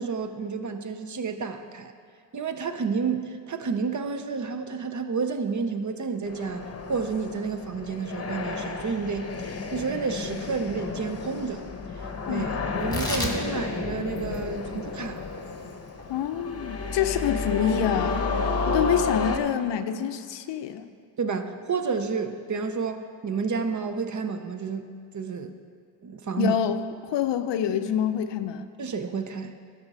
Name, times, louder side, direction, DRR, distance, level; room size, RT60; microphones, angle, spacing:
voice 1, 0.0-1.9 2.3-6.6 6.9-11.7 11.9-12.0 12.3-15.2 21.2-24.9 25.1-25.6 26.0-26.6 28.8-29.6, right 5 dB, 35° right, 8 dB, 0.7 m, -30 dB
sound 1, 6.2-19.4, left 3 dB, 30° left, 0.9 m, -31 dB
Tearing, 12.7-19.5, left 1 dB, 10° left, 1.7 m, -37 dB
voice 2, 16.1-18.3 18.7-20.9 26.4-28.7, left 9 dB, 60° left, 10 dB, 0.6 m, -27 dB
12.0 x 4.2 x 5.4 m, 2.2 s
supercardioid pair, 50°, 49 cm